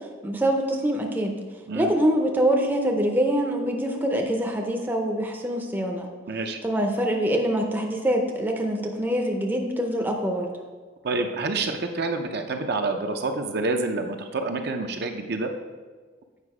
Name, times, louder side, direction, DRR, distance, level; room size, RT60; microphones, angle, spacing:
voice 1, 0.2-1.4 1.7-6.1 6.6-10.5, right 1 dB, 10° right, 1 dB, 0.6 m, -24 dB
voice 2, 6.3-6.6 11.0-15.5, right 3 dB, 50° right, 5 dB, 0.6 m, -28 dB
8.2 x 5.0 x 4.8 m, 1.4 s
head